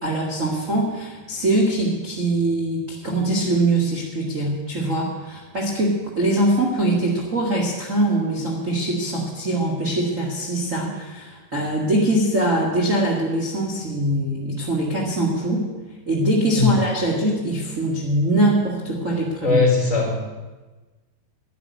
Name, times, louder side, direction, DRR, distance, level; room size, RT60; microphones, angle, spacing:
voice 1, 0.0-15.6 16.1-19.6, right 1 dB, 40° right, -3 dB, 1.1 m, -22 dB
voice 2, 19.4-20.3, left 4 dB, 20° left, -1 dB, 3.7 m, -19 dB
11.5 x 11.0 x 9.6 m, 1.2 s
omnidirectional pair, 4.9 m